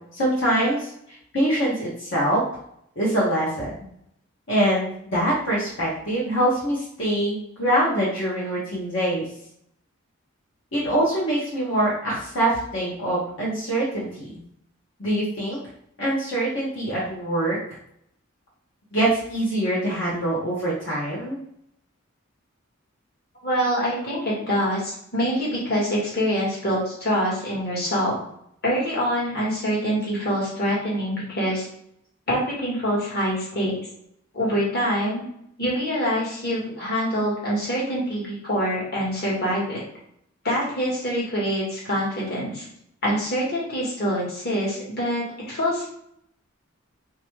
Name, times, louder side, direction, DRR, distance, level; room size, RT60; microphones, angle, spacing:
voice 1, 0.1-0.9 1.3-2.4 3.0-3.7 4.5-9.2 10.7-14.3 15.0-15.6 16.0-17.6 18.9-21.4, right 1 dB, 70° left, -8 dB, 1.2 m, -24 dB
voice 2, 23.4-28.1 28.6-31.7 32.3-33.7 34.3-35.2 35.6-39.8 40.4-42.7 43.0-45.9, equal, 50° left, -5 dB, 1.5 m, -25 dB
3.5 x 2.9 x 3.2 m, 0.72 s
head